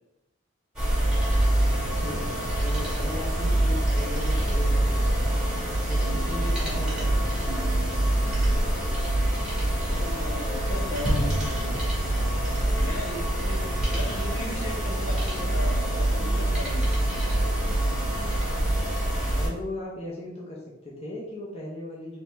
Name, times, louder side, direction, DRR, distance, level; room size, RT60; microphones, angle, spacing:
sound 1, 0.8-19.5, right 1 dB, 5° right, 1.1 m, -25 dB
voice 1, 2.0-5.4 5.9-7.5 19.3-22.2, left 1 dB, 30° left, -5 dB, 0.7 m, -37 dB
Guitar, 6.0-10.4, equal, 80° right, 0.5 m, -44 dB
voice 2, 9.7-11.8 12.7-16.9, left 1 dB, 70° left, -3 dB, 1.2 m, -37 dB
sound 2, 11.0-15.0, right 1 dB, 25° right, 0.8 m, -33 dB
3.2 x 2.7 x 4.5 m, 0.86 s
head